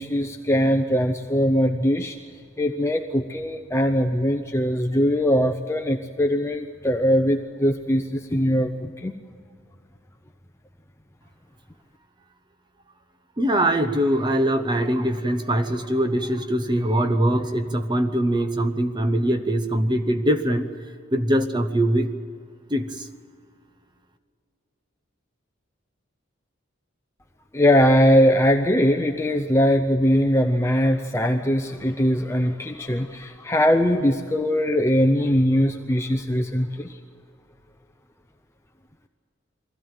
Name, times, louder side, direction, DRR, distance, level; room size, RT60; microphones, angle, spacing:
voice 1, 0.0-2.2 2.6-9.1 27.5-37.0, equal, 15° left, 4 dB, 0.7 m, -21 dB
voice 2, 13.4-20.7 21.1-22.1 22.7-23.1, right 1 dB, 20° right, 8 dB, 0.9 m, -22 dB
22.5 x 16.0 x 9.0 m, 2.3 s
head